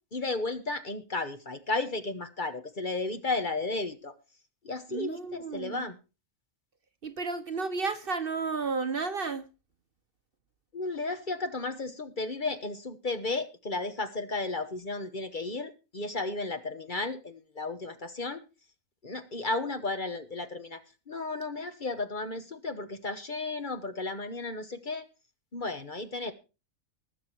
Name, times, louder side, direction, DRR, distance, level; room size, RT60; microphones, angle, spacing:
voice 1, 0.1-4.1 4.6-6.0 10.7-18.4 19.0-20.8 21.1-25.1 25.5-26.3, left 3 dB, 40° left, 1.2 m, -34 dB
voice 2, 4.9-5.9 7.0-9.4, right 4 dB, 45° right, 1.0 m, -32 dB
19.5 x 7.3 x 4.5 m
omnidirectional pair, 1.4 m